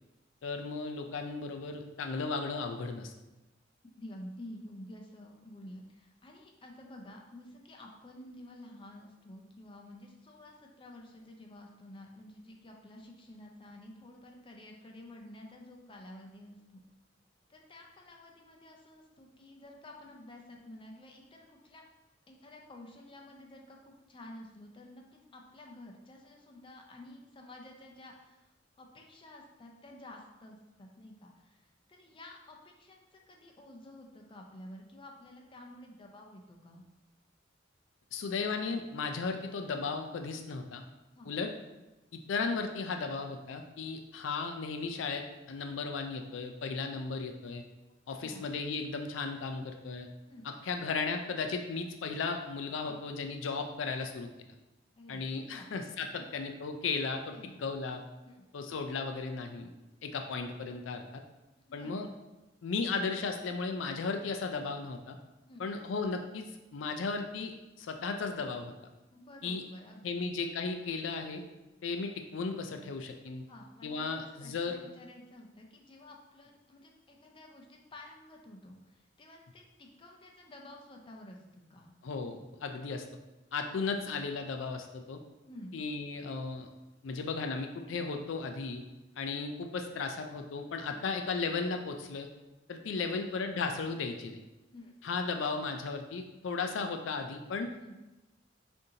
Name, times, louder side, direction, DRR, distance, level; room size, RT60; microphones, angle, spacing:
voice 1, 0.4-3.1 38.1-40.8 41.3-41.5 42.1-47.6 48.1-50.1 50.6-54.5 55.1-58.0 58.5-59.7 60.0-61.2 61.7-62.1 62.6-65.2 65.6-68.7 69.4-69.6 70.0-71.4 71.8-73.4 73.8-74.8 82.0-83.1 83.5-85.2 85.7-86.7 87.0-88.8 89.2-92.3 92.7-94.4 95.0-97.7, left 4 dB, 85° left, 5 dB, 0.4 m, -35 dB
voice 2, 4.0-16.8 17.5-21.8 22.3-36.8 41.1-41.3 48.2-48.4 50.3-50.5 52.8-53.0 55.0-55.7 56.1-56.4 57.3-57.6 58.2-58.4 61.7-62.1 65.5-65.7 69.1-70.3 73.5-81.9 85.5-85.8 90.9-91.1 92.8-93.4 94.7-95.0 97.8-97.9, left 1 dB, 30° left, 1 dB, 0.5 m, -51 dB
6.4 x 2.7 x 2.8 m, 1.0 s
head